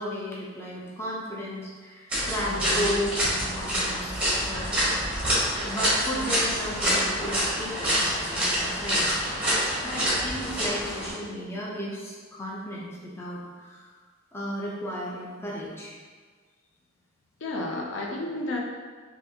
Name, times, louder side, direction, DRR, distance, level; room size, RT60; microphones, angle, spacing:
voice 1, 0.0-4.9 5.6-9.2 9.8-13.9 14.3-15.9, equal, 10° left, -5 dB, 0.5 m, -34 dB
sound 1, 2.1-11.1, equal, 5° right, 1.1 m, -26 dB
voice 2, 2.5-3.0 17.4-18.6, left 2 dB, 65° left, -1 dB, 0.5 m, -32 dB
3.9 x 2.7 x 2.7 m, 1.5 s
head